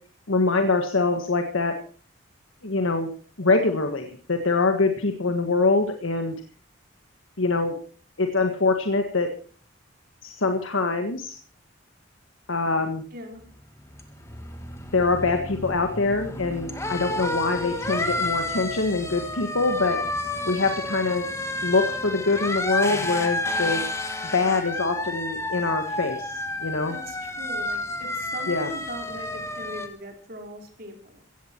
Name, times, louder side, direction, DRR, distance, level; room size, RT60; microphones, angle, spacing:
voice 1, 0.3-1.7 2.6-3.1 3.4-6.3 7.4-7.8 8.2-9.3 10.2-11.4 12.5-13.0 14.9-20.0 20.4-21.2 21.6-23.8 24.3-27.0 28.5-28.7, left 3 dB, 80° left, 6 dB, 1.6 m, -24 dB
voice 2, 13.1-13.4 26.9-31.2, equal, 45° right, 3 dB, 4.1 m, -40 dB
sound 1, 13.4-29.9, left 2 dB, 15° left, 1.9 m, -30 dB
16.5 x 15.0 x 4.5 m, 0.43 s
head